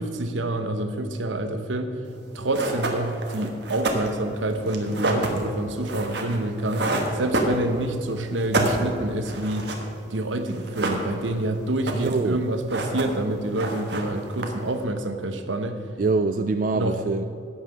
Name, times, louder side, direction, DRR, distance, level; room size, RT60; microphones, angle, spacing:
voice 1, 0.0-2.0 2.3-6.9 7.1-9.7 10.1-15.8 16.7-17.0, right 1 dB, 80° right, 7 dB, 1.0 m, -27 dB
sound 1, 2.1-2.2 2.5-8.0 8.3-9.9 10.1-10.2 10.5-11.4 11.7-12.3 12.5-13.3 13.5-14.8, right 2 dB, 60° right, 1.5 m, -28 dB
voice 2, 11.9-12.5 16.0-17.2, right 3 dB, 45° right, 9 dB, 0.3 m, -24 dB
16.5 x 5.7 x 6.1 m, 2.8 s
head